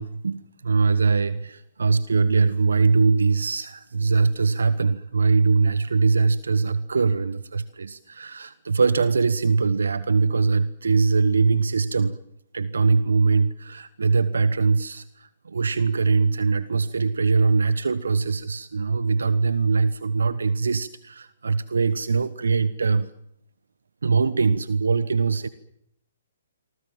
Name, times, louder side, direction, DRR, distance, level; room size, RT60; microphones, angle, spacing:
voice 1, 0.0-12.2 12.5-23.1 24.0-25.5, right 4 dB, 75° right, 15 dB, 1.2 m, -22 dB
27.0 x 24.0 x 7.6 m, 0.79 s
figure-of-eight pair, 130°, 0 cm